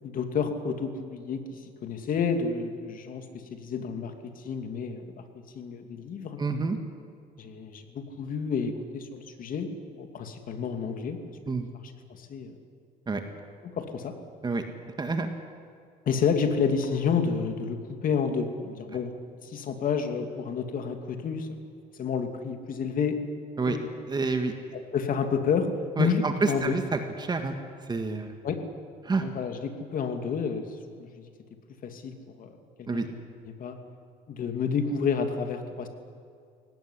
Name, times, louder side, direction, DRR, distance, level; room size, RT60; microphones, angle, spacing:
voice 1, 0.0-5.0 5.5-6.4 7.4-11.2 11.5-11.6 12.2-12.5 13.6-14.1 16.1-19.1 19.4-21.5 22.0-23.2 23.7-23.9 24.7-25.7 26.0-26.8 28.4-28.6 29.2-30.7 31.0-31.1 31.8-32.5 32.9-33.2 33.5-33.8 34.3-35.9, left 6 dB, 55° left, 6 dB, 2.8 m, -30 dB
voice 2, 6.4-6.8 11.5-11.7 13.1-13.2 14.4-14.7 15.0-15.3 23.6-23.8 24.1-24.5 26.0-27.5 27.9-28.3 29.0-29.2 32.9-33.1, right 4 dB, 25° right, 6 dB, 1.9 m, -28 dB
22.0 x 18.5 x 10.0 m, 2.2 s
cardioid pair, 110°, 17 cm